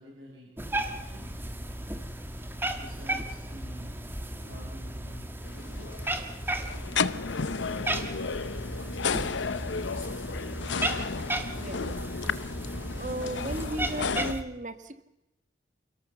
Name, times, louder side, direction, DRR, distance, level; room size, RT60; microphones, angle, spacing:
voice 1, 0.0-1.4 2.7-5.9, equal, 85° right, -4 dB, 6.7 m, -49 dB
Cat, 0.6-14.4, right 1 dB, 10° right, 1.8 m, -35 dB
sound 1, 5.4-14.3, left 5 dB, 90° left, 0.8 m, -33 dB
voice 2, 11.6-12.0 13.0-15.0, right 1 dB, 40° right, 10 dB, 1.7 m, -36 dB
28.5 x 17.5 x 7.1 m, 0.95 s
head